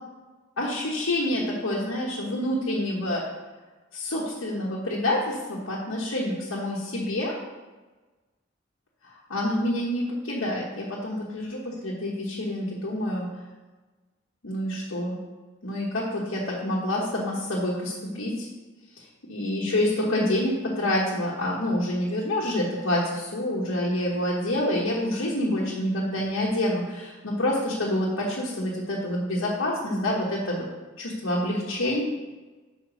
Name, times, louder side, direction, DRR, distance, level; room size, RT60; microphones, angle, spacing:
voice 1, 0.6-3.2 3.9-7.3 9.3-13.3 14.4-15.2 15.6-18.5 19.3-30.6 31.0-32.0, left 1 dB, 80° left, -7 dB, 1.3 m, -27 dB
5.0 x 4.9 x 6.2 m, 1.2 s
head